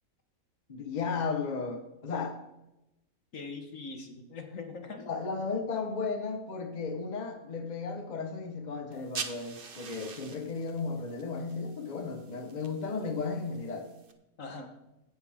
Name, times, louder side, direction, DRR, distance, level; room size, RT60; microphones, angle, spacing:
voice 1, 0.7-2.4 5.0-13.9, left 4 dB, 30° left, 5 dB, 1.3 m, -34 dB
voice 2, 3.3-5.1 14.4-14.8, left 4 dB, 60° left, 5 dB, 1.7 m, -42 dB
sound 1, 8.9-14.1, right 5 dB, 40° right, 1.0 m, -45 dB
16.0 x 10.5 x 3.7 m, 0.94 s
omnidirectional pair, 1.5 m